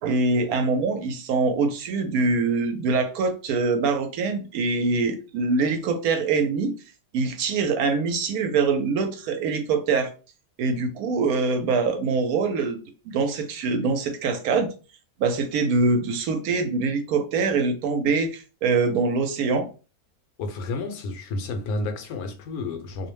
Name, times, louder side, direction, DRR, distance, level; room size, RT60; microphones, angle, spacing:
voice 1, 0.0-6.7 7.1-10.1 10.6-12.8 13.0-14.7 15.2-19.7, right 4 dB, 80° right, 1.1 m, -24 dB
voice 2, 20.4-23.1, left 2 dB, 80° left, 1.1 m, -31 dB
2.7 x 2.0 x 3.0 m
omnidirectional pair, 1.6 m